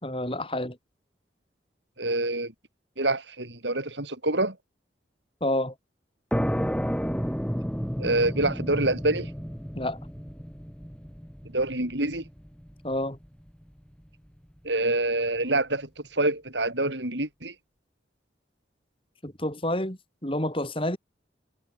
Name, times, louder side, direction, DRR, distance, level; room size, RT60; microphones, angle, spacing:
voice 1, 0.0-0.8 5.4-5.7 9.8-10.0 12.8-13.2 19.2-21.0, left 1 dB, 30° left, 5.2 m, -29 dB
voice 2, 2.0-2.5 3.0-4.6 8.0-9.3 11.5-12.2 14.6-17.5, right 2 dB, 80° right, 7.4 m, -26 dB
sound 1, 6.3-13.7, equal, 5° left, 6.8 m, -32 dB
head